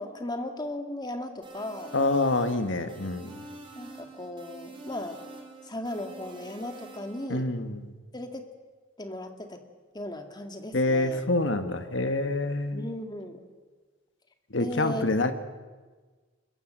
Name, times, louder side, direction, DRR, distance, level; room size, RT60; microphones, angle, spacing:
voice 1, 0.0-2.0 3.8-5.2 5.6-7.5 8.1-8.5 9.0-9.6 9.9-11.2 12.7-13.4 14.6-15.0, left 1 dB, 20° left, 5 dB, 2.1 m, -36 dB
sound 1, 1.4-7.2, right 2 dB, 25° right, 4.7 m, -46 dB
voice 2, 1.9-3.3 7.3-7.9 10.7-12.9 14.5-15.3, left 2 dB, 70° left, 8 dB, 1.6 m, -26 dB
24.5 x 22.0 x 7.7 m, 1.4 s
head